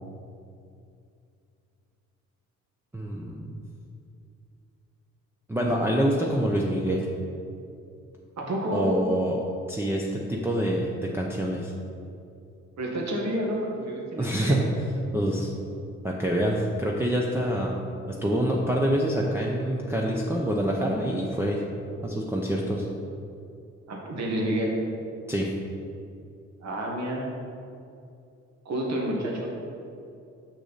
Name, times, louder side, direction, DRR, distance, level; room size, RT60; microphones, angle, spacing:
voice 1, 2.9-3.6 5.5-7.1 8.7-9.4 9.7-11.7 14.2-14.7 15.1-15.5 16.0-17.7 18.1-21.6 22.0-22.9 25.3-25.5, right 1 dB, 10° right, -2 dB, 0.6 m, -26 dB
voice 2, 8.4-8.9 12.8-14.6 23.9-24.7 26.6-27.3 28.6-29.5, right 1 dB, 65° right, -1 dB, 1.6 m, -29 dB
6.5 x 6.3 x 4.1 m, 2.6 s
cardioid pair, 90°, 30 cm